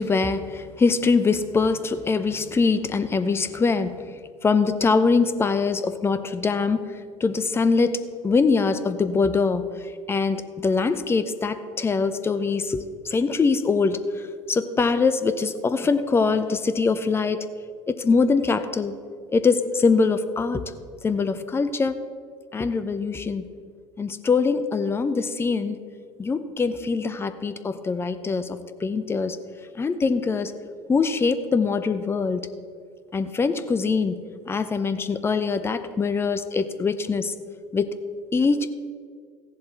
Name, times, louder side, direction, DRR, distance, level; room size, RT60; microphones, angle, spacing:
voice 1, 0.0-4.0 4.4-6.9 7.2-9.6 10.1-17.5 17.9-18.9 19.3-20.6 21.0-21.9 22.5-23.5 24.0-25.8 26.2-29.4 29.8-30.5 30.9-32.5 33.1-34.2 34.5-37.3 37.7-37.9 38.3-38.7, left 4 dB, 15° left, 11 dB, 0.6 m, -23 dB
15.5 x 7.4 x 4.3 m, 2.1 s
figure-of-eight pair, 70°, 15 cm